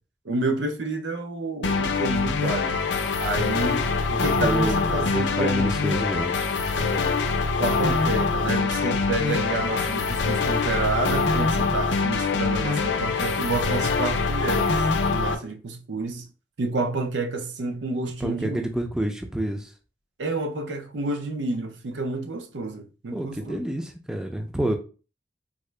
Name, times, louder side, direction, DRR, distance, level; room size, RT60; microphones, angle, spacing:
voice 1, 0.2-2.8 3.2-5.8 6.7-7.1 7.6-16.3 16.6-18.6 20.2-23.7, right 2 dB, 90° right, 0.6 m, -29 dB
sound 1, 1.6-15.3, left 4 dB, 85° left, 0.5 m, -24 dB
voice 2, 4.4-6.4 18.2-19.7 23.1-24.8, right 1 dB, 5° right, 0.3 m, -28 dB
3.7 x 2.0 x 3.1 m
head